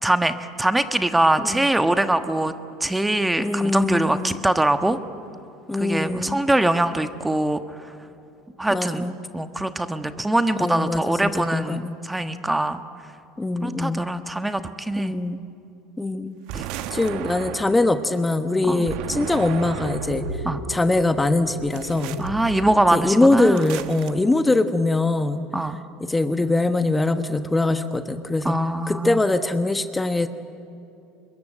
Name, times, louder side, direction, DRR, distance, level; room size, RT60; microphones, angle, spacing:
voice 1, 0.0-2.5 2.8-5.0 5.7-7.6 8.6-9.0 9.3-12.8 13.6-15.2 16.5-16.6 18.6-18.8 20.4-20.6 22.2-23.7 25.5-25.8 28.4-29.2, right 1 dB, 10° right, 9 dB, 1.3 m, -23 dB
voice 2, 3.4-4.4 5.7-6.4 8.7-9.2 10.6-12.0 13.4-14.1 15.0-15.4 16.0-16.4 16.9-20.4 20.7-22.2 22.9-25.4 26.0-28.6 28.9-30.3, left 2 dB, 10° left, 9 dB, 1.2 m, -22 dB
sound 1, 16.5-18.0 18.9-20.3 21.7-22.3 23.5-24.1, right 10 dB, 60° right, 1.3 m, -34 dB
sound 2, 18.8-23.6, right 2 dB, 90° right, 4.1 m, -36 dB
26.0 x 22.5 x 9.1 m, 2.8 s
hypercardioid pair, 75°, 0 cm